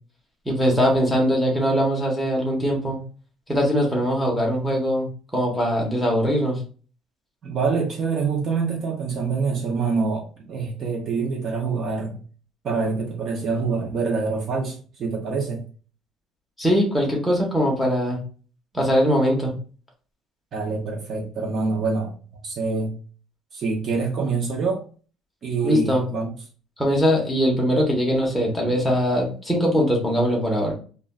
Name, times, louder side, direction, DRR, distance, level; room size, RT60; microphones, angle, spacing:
voice 1, 0.5-3.0 3.5-6.6 16.6-18.2 18.7-19.5 25.6-26.0 26.8-30.7, equal, ahead, -2 dB, 0.7 m, -21 dB
voice 2, 7.4-12.2 12.6-15.6 20.5-22.9 23.5-24.8 25.4-26.3, right 4 dB, 35° right, 0 dB, 0.6 m, -26 dB
2.4 x 2.2 x 3.5 m, 0.39 s
cardioid pair, 175°, 0 cm